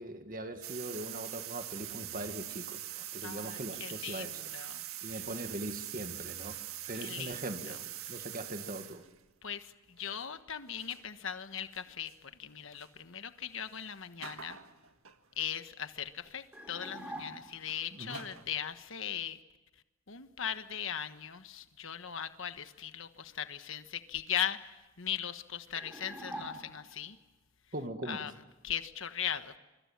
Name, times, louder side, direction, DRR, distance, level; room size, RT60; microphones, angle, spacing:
voice 1, 0.0-4.4 5.0-6.6 6.9-7.8 8.1-9.0 17.9-18.2 27.7-28.3, right 1 dB, 40° right, 7 dB, 1.9 m, -41 dB
sound 1, 0.6-9.2 10.0-10.2 10.7-11.0 11.6-11.8 12.1-12.2 12.7-12.9 13.7-13.8 14.2-15.5 16.2-16.5 16.8-18.5, right 12 dB, 85° right, 1.7 m, -43 dB
voice 2, 3.2-5.2 7.0-7.4 7.7-7.8 8.1-8.2 9.4-12.1 12.4-14.6 15.4-19.4 20.1-27.2 28.0-28.3 28.6-29.5, left 9 dB, 65° left, 10 dB, 1.3 m, -39 dB
sound 2, 16.5-17.7 25.8-27.1, equal, 5° right, 4.6 m, -44 dB
25.0 x 24.5 x 7.4 m, 1.0 s
head